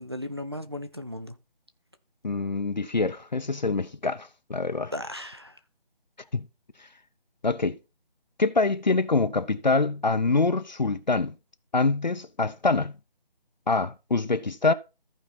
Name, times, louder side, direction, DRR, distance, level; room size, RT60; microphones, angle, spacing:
voice 1, 0.0-1.4 4.9-5.6, left 1 dB, 25° right, 0.6 m, -36 dB
voice 2, 2.2-4.9 6.3-6.5 7.4-7.8 8.4-11.3 11.7-13.0 13.7-14.7, left 3 dB, 50° left, 0.7 m, -25 dB
14.5 x 4.9 x 4.3 m
figure-of-eight pair, 175°, 29 cm